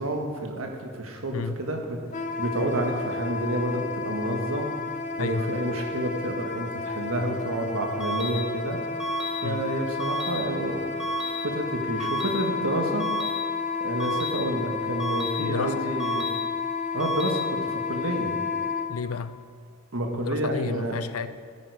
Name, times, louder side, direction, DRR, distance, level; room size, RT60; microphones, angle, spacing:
voice 1, 0.0-2.0 2.4-4.7 5.2-8.8 9.4-10.9 11.4-13.1 13.8-16.3 16.9-18.3 19.9-21.0, right 1 dB, 75° right, 3 dB, 1.6 m, -29 dB
Wind instrument woodwind instrument, 2.1-18.9, left 4 dB, 35° left, 0.8 m, -31 dB
voice 2, 5.2-5.6 9.4-9.6 15.4-15.8 18.9-19.4 20.1-21.3, left 5 dB, 85° left, 13 dB, 0.5 m, -32 dB
sound 1, 8.0-8.3 9.0-9.3 10.0-10.3 11.0-11.3 12.0-12.3 13.0-13.3 14.0-14.3 15.0-15.3 16.0-16.3 17.0-17.3, right 2 dB, 5° right, 1.2 m, -31 dB
13.5 x 9.8 x 4.8 m, 2.1 s
head